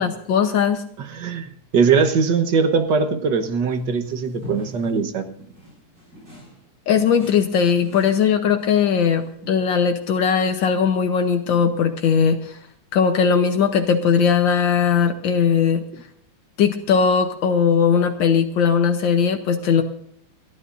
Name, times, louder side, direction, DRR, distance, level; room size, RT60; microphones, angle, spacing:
voice 1, 0.0-0.8 6.9-12.6 12.9-15.8 16.6-19.8, left 6 dB, 75° left, 6 dB, 1.7 m, -19 dB
voice 2, 1.0-5.2, right 5 dB, 65° right, 8 dB, 1.8 m, -21 dB
sound 1, 3.6-5.0 5.4-6.7 6.9-9.9 10.5-10.7 11.5-11.7, equal, 50° right, 8.6 m, -42 dB
29.0 x 11.5 x 2.6 m, 0.64 s
omnidirectional pair, 2.1 m